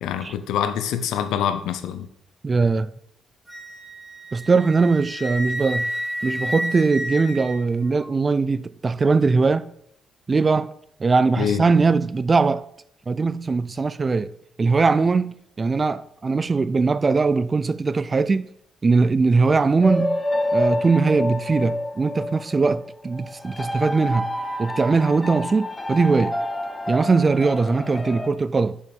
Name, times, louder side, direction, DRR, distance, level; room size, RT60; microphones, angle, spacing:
voice 1, 0.0-2.1 11.4-11.6, left 9 dB, 85° left, 0.7 m, -25 dB
voice 2, 2.4-2.9 4.3-5.9 6.2-9.7 10.3-10.7 11.0-12.7 13.1-18.5 18.8-20.2 20.5-24.3 24.6-26.4 26.9-28.8, right 4 dB, 30° right, 0.3 m, -20 dB
Wind instrument woodwind instrument, 3.5-8.1, equal, 10° right, 2.5 m, -31 dB
sound 1, 19.8-28.3, left 1 dB, 15° left, 0.8 m, -28 dB
6.5 x 5.3 x 5.3 m
cardioid pair, 90°, 0 cm